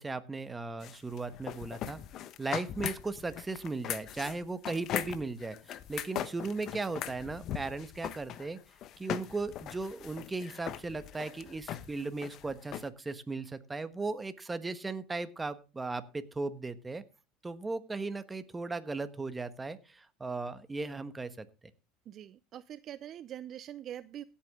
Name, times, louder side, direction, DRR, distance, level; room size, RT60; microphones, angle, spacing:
voice 1, 0.0-2.0 2.4-8.6 9.0-17.0 17.4-21.5, right 3 dB, 15° right, 11 dB, 1.3 m, -37 dB
sound 1, 0.8-12.9, left 11 dB, 50° left, 1.0 m, -39 dB
voice 2, 22.1-24.2, right 11 dB, 45° right, 15 dB, 0.5 m, -44 dB
16.5 x 8.5 x 3.7 m, 0.30 s
supercardioid pair, 105°, 0 cm